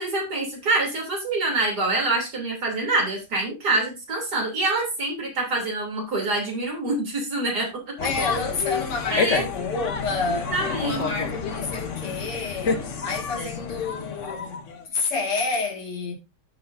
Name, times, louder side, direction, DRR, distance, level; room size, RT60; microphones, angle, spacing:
voice 1, 0.0-7.9 9.1-9.4 10.3-11.1 13.4-13.5, right 2 dB, 45° right, 3.7 m, -26 dB
voice 2, 8.0-16.2, left 4 dB, 80° left, 3.1 m, -29 dB
sound 1, 8.0-14.9, left 5 dB, 45° left, 1.1 m, -29 dB
14.0 x 6.2 x 2.7 m
omnidirectional pair, 2.4 m